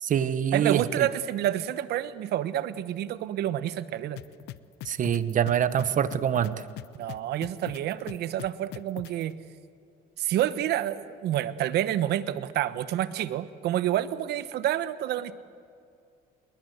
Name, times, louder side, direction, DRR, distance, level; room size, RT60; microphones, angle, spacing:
voice 1, 0.0-1.1 4.8-6.5, right 9 dB, 50° right, 13 dB, 1.3 m, -25 dB
voice 2, 0.5-4.2 6.9-9.4 10.2-15.3, right 12 dB, 75° right, 14 dB, 1.2 m, -28 dB
sound 1, 4.2-9.2, left 15 dB, 85° left, 0.8 m, -40 dB
28.0 x 21.5 x 8.1 m, 2.4 s
cardioid pair, 110°, 17 cm